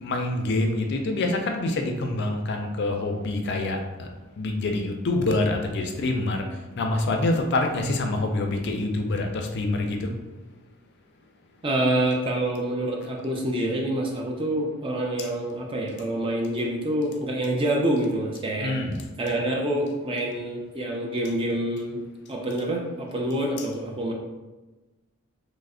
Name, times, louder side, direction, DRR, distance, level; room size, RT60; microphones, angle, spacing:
voice 1, 0.0-4.1 4.4-6.5 6.8-10.1 18.6-18.9, left 2 dB, 50° left, 4 dB, 0.4 m, -26 dB
voice 2, 11.6-18.8 19.2-22.0 22.3-24.1, right 1 dB, 25° right, 0 dB, 0.4 m, -27 dB
3.2 x 2.0 x 3.6 m, 1.2 s
head